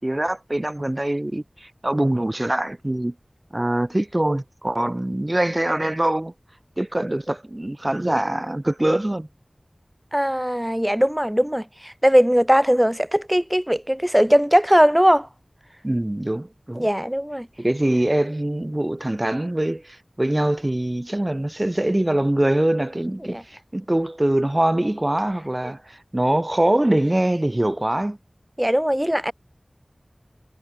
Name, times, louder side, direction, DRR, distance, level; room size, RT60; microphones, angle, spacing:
voice 1, 0.0-3.1 3.5-6.3 6.8-9.3 15.8-16.9 17.6-28.2, right 1 dB, 30° right, 3.5 m, -23 dB
voice 2, 10.1-15.3 16.8-17.5 23.3-23.4 28.6-29.3, equal, 10° right, 1.4 m, -19 dB
wide cardioid pair, 50°, 0 cm